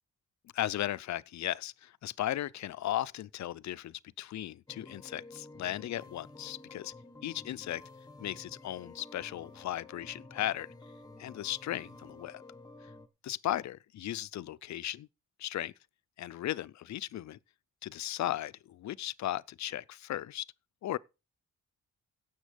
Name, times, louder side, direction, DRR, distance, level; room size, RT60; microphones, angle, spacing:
voice 1, 0.5-6.9 7.2-7.8 8.2-10.7 11.2-12.4 13.2-15.1 15.4-15.7 16.2-17.4 17.8-20.5 20.8-21.0, left 13 dB, 60° left, 0.5 m, -36 dB
sound 1, 4.7-13.1, left 2 dB, 10° left, 1.2 m, -51 dB
16.5 x 7.3 x 5.1 m
wide cardioid pair, 145°, 31 cm